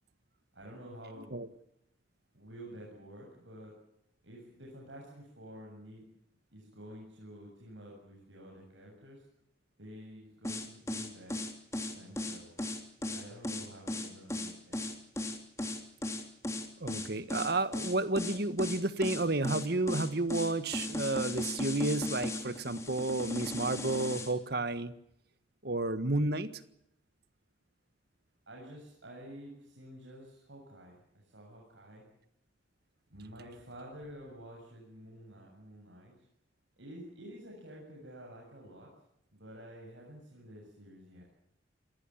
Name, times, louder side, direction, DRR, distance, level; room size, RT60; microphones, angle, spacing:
voice 1, 0.5-1.4 2.3-3.7 4.2-6.0 6.5-9.2 9.8-11.4 12.0-12.6 13.0-14.8 28.5-32.0 33.1-36.1 36.8-38.9 39.3-41.2, equal, 80° right, -2 dB, 7.6 m, -50 dB
sound 1, 10.4-24.3, left 1 dB, 15° left, 3.2 m, -36 dB
voice 2, 16.8-24.9 25.6-26.5, right 2 dB, 60° right, 12 dB, 1.6 m, -31 dB
27.5 x 20.0 x 7.3 m, 0.76 s
head